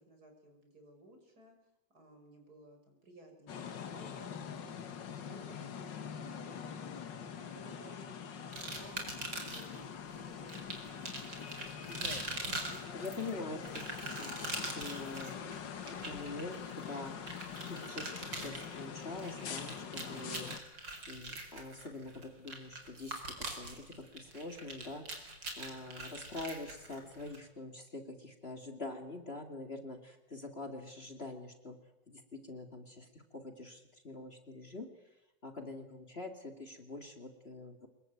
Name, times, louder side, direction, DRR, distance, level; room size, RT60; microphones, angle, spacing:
voice 1, 0.0-1.5 1.9-4.7 5.1-7.0 7.5-11.5 27.0-27.1, right 1 dB, 55° right, 4 dB, 6.1 m, -58 dB
sound 1, 3.5-20.6, left 7 dB, 80° left, 2.2 m, -44 dB
sound 2, 8.5-9.8 10.5-27.4, right 2 dB, 80° right, 5.3 m, -43 dB
voice 2, 12.9-15.6 16.0-17.1 17.7-20.5 21.1-25.0 25.6-31.8 32.1-34.9 35.4-37.9, left 2 dB, 35° left, 5 dB, 2.7 m, -45 dB
25.0 x 22.0 x 9.3 m, 0.88 s
omnidirectional pair, 1.9 m